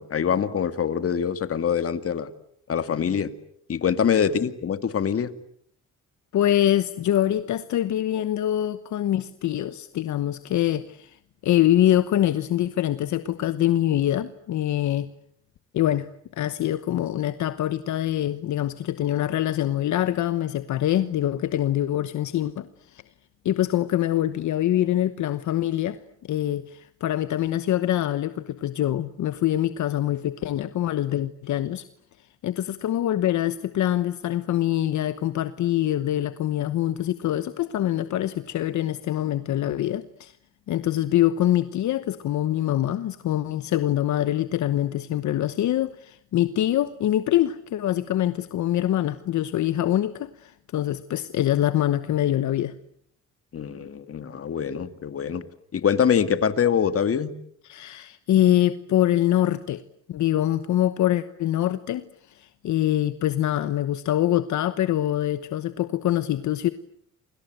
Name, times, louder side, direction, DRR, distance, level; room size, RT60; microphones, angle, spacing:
voice 1, 0.0-2.3 2.7-3.3 3.7-5.3 53.5-55.4 55.7-57.3, left 7 dB, 50° left, 10 dB, 2.3 m, -24 dB
voice 2, 6.3-11.1 11.4-15.1 15.7-16.1 16.4-22.7 22.9-23.0 23.4-26.0 26.3-31.8 32.4-40.3 40.7-52.7 57.6-59.8 60.1-62.0 62.3-66.7, left 12 dB, 75° left, 12 dB, 1.1 m, -24 dB
29.5 x 25.0 x 8.0 m, 0.67 s
cardioid pair, 90°, 30 cm